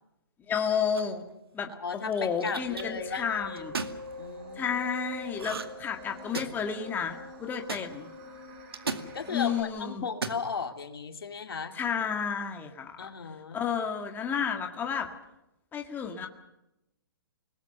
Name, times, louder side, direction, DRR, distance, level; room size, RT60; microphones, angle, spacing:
voice 1, 0.5-1.2 1.5-3.7 4.6-8.1 9.3-10.1 11.7-13.1 13.5-15.1 15.7-16.3, left 7 dB, 15° left, 4 dB, 2.0 m, -31 dB
sound 1, 0.9-1.3 2.1-2.8 3.6-4.0 5.4-5.8 6.1-6.7 7.7-7.8 8.7-9.1 10.1-10.4, right 4 dB, 85° right, 2.2 m, -35 dB
voice 2, 1.8-3.9 4.2-4.8 5.2-5.3 9.1-11.8 13.0-13.6, left 5 dB, 80° left, 5 dB, 2.6 m, -36 dB
sound 2, 2.6-9.6, left 2 dB, 35° right, 6.2 m, -44 dB
28.5 x 20.0 x 6.7 m, 0.88 s
hypercardioid pair, 135°, 12 cm